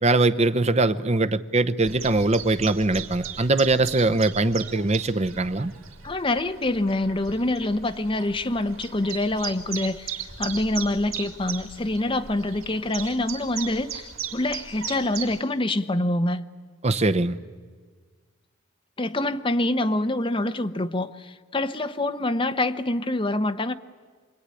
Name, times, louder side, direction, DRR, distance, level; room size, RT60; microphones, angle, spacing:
voice 1, 0.0-5.7 16.8-17.4, right 2 dB, 30° right, 0.8 m, -22 dB
Chirp tweet, 1.8-15.4, right 7 dB, 85° right, 3.0 m, -38 dB
voice 2, 6.0-16.4 19.0-23.7, left 2 dB, 25° left, 0.9 m, -26 dB
27.0 x 22.5 x 9.8 m
head